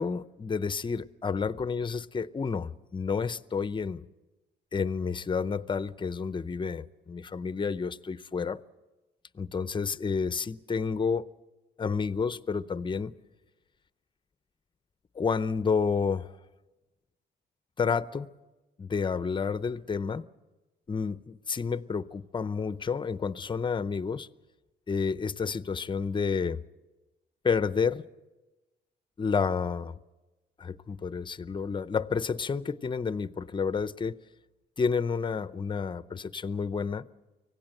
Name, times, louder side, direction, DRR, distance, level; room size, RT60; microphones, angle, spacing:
voice 1, 0.0-4.1 4.7-8.6 9.3-11.3 11.8-13.1 15.1-16.3 17.8-18.3 18.8-20.2 20.9-24.3 24.9-26.6 27.4-28.0 29.2-30.0 30.6-34.2 34.8-37.1, left 5 dB, 25° left, 0.6 m, -30 dB
25.0 x 17.0 x 7.9 m
cardioid pair, 90°, 20 cm